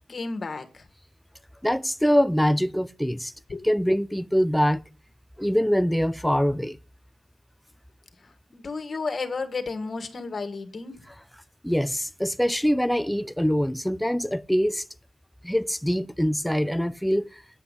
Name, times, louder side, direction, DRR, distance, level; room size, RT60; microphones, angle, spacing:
voice 1, 0.1-0.8 3.5-3.6 8.5-11.0, left 4 dB, 50° left, 1.9 m, -32 dB
voice 2, 1.6-3.3 3.6-4.8 5.4-6.8 11.6-14.8 15.4-17.4, equal, 5° left, 0.4 m, -24 dB
9.6 x 5.7 x 8.2 m
cardioid pair, 50°, 0 cm